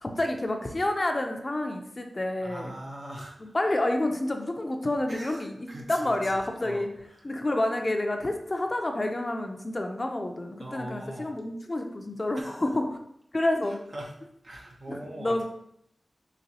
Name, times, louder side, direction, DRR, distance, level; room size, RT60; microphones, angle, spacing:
voice 1, 0.0-2.7 3.4-6.9 7.2-13.0 13.3-13.8 14.9-15.4, left 1 dB, 35° left, 4 dB, 0.5 m, -29 dB
voice 2, 2.4-3.6 5.1-6.9 10.6-11.3 12.3-12.6 13.7-14.1 14.4-15.4, right 1 dB, 70° right, -2 dB, 0.8 m, -41 dB
4.0 x 2.9 x 2.8 m, 0.73 s
wide cardioid pair, 60°, 0 cm